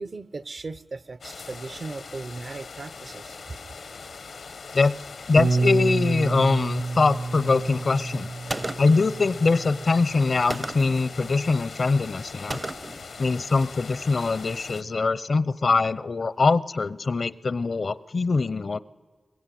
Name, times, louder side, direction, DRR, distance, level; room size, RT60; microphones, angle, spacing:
voice 1, 0.0-3.4, right 3 dB, 65° right, 16 dB, 0.7 m, -37 dB
sound 1, 1.2-14.8, left 4 dB, 85° left, 1.0 m, -41 dB
voice 2, 5.3-8.3 8.8-12.6 13.2-18.8, left 3 dB, 65° left, 18 dB, 0.6 m, -23 dB
Bass guitar, 5.4-11.6, right 3 dB, 90° right, 0.9 m, -30 dB
Gunshot gunfire, 8.5-9.1 10.5-11.0 12.5-13.1, right 2 dB, 30° right, 0.6 m, -33 dB
23.0 x 20.0 x 9.2 m, 1.4 s
cardioid pair, 50°, 0 cm